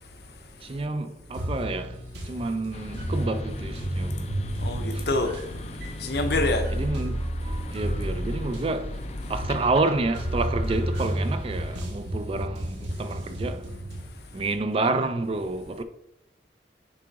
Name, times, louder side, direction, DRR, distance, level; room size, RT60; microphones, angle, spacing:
voice 1, 0.6-2.0 2.2-4.3 4.9-5.0 6.8-7.2 7.7-8.9 9.3-13.7 14.3-15.8, right 3 dB, 30° right, 0.4 m, -29 dB
sound 1, 1.3-14.1, right 1 dB, 80° right, 1.7 m, -32 dB
sound 2, 2.7-11.8, left 2 dB, 35° left, 0.4 m, -39 dB
voice 2, 4.6-5.4 6.0-6.7, left 2 dB, 65° left, 0.8 m, -26 dB
9.8 x 3.6 x 2.9 m
head